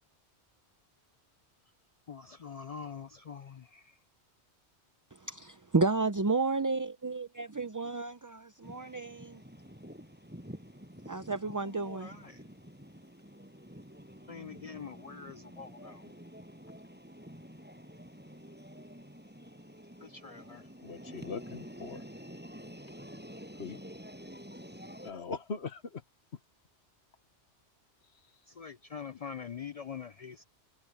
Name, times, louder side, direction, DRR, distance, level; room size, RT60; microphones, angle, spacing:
voice 1, 2.1-3.6 11.7-12.4 14.3-16.0 20.2-20.6 28.6-30.4, left 6 dB, 55° left, 0.4 m, -44 dB
voice 2, 5.3-9.4 11.1-12.1, right 3 dB, 25° right, 0.5 m, -32 dB
sound 1, 8.6-25.1, equal, 10° right, 7.7 m, -49 dB
voice 3, 20.8-22.1 23.6-23.8 25.0-26.0 28.1-28.4, left 4 dB, 70° left, 1.6 m, -41 dB
omnidirectional pair, 1.1 m